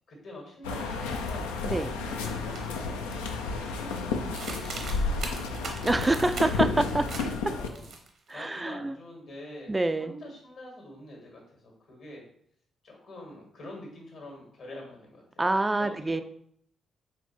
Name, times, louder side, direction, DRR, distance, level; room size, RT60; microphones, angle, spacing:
voice 1, 0.1-1.5 2.1-6.2 6.9-7.2 7.5-7.9 8.3-9.7 10.0-12.2 12.8-15.4 15.8-16.2, left 1 dB, 65° left, -1 dB, 1.8 m, -46 dB
sound 1, 0.6-7.7, left 4 dB, 85° left, 0.4 m, -31 dB
sound 2, 2.6-2.7 3.1-3.5 4.3-6.7 7.1-7.3 7.6-8.3, right 4 dB, 65° right, 0.8 m, -39 dB
voice 2, 5.8-7.0 7.4-7.5 8.3-9.0 9.7-10.1 15.4-16.2, right 2 dB, 20° right, 9 dB, 0.3 m, -26 dB
4.3 x 3.3 x 3.0 m, 0.65 s
hypercardioid pair, 40°, 0 cm